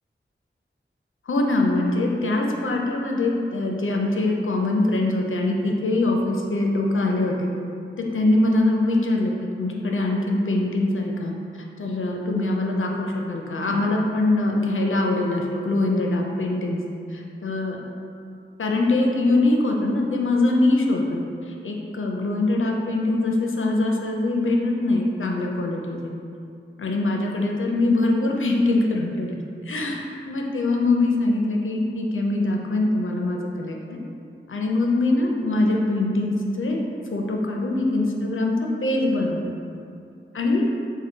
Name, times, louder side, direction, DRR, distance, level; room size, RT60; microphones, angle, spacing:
voice 1, 1.3-7.5 8.0-9.3 9.6-11.3 11.8-16.8 17.1-17.8 18.6-26.1 26.8-29.4 29.7-34.0 34.5-38.6 38.8-39.5 40.3-40.7, left 2 dB, 70° left, 0 dB, 0.4 m, -23 dB
3.6 x 2.1 x 3.8 m, 2.4 s
wide cardioid pair, 50°, 21 cm